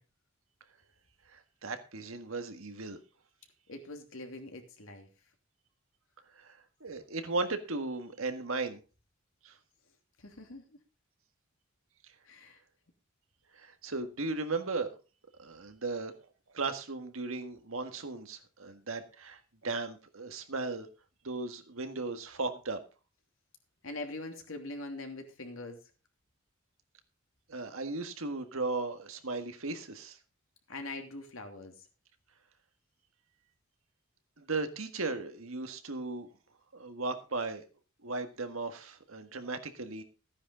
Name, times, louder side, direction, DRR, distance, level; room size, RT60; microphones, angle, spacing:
voice 1, 1.3-3.0 6.3-8.8 9.4-9.6 13.5-15.0 15.4-16.1 16.5-20.9 21.2-22.8 27.5-30.2 34.4-36.3 36.7-37.6 38.0-40.0, right 3 dB, 75° right, 8 dB, 1.7 m, -36 dB
voice 2, 3.7-5.1 10.2-10.8 12.2-12.6 23.8-25.8 30.7-31.7, left 2 dB, 70° left, 4 dB, 2.9 m, -43 dB
14.5 x 9.8 x 3.9 m, 0.33 s
head